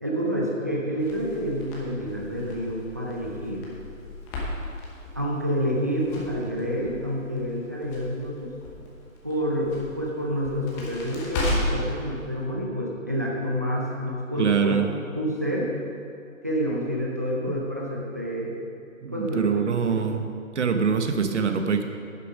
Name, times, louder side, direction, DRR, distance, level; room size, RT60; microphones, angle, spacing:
voice 1, 0.0-3.7 5.1-8.5 9.2-14.8 15.1-15.7 16.4-18.6 19.1-19.6 19.9-20.0, equal, 15° right, -3 dB, 0.5 m, -28 dB
Crackle, 1.0-11.9, left 1 dB, 10° left, 0.9 m, -35 dB
voice 2, 14.4-14.9 17.4-17.6 19.0-20.2 20.5-21.8, right 6 dB, 60° right, 6 dB, 1.1 m, -24 dB
10.5 x 7.2 x 5.1 m, 2.4 s
figure-of-eight pair, 150°, 41 cm